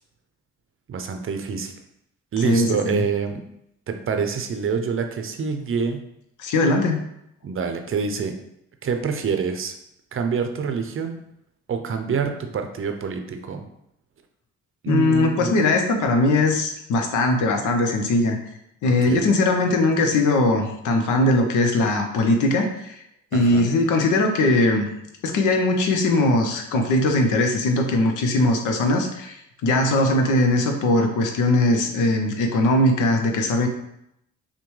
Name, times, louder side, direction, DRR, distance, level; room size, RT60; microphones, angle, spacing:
voice 1, 0.9-1.7 2.3-3.4 3.9-6.0 7.4-8.3 8.8-9.7 10.1-11.2 11.7-13.6 14.8-15.6 18.9-19.3 23.3-23.7, right 6 dB, 45° right, 6 dB, 0.6 m, -26 dB
voice 2, 2.4-3.0 6.4-7.0 14.9-18.4 18.8-23.0 23.3-24.9 25.2-29.4 29.6-33.7, left 2 dB, 80° left, 4 dB, 0.8 m, -20 dB
5.8 x 2.2 x 3.2 m, 0.78 s
cardioid pair, 90°, 30 cm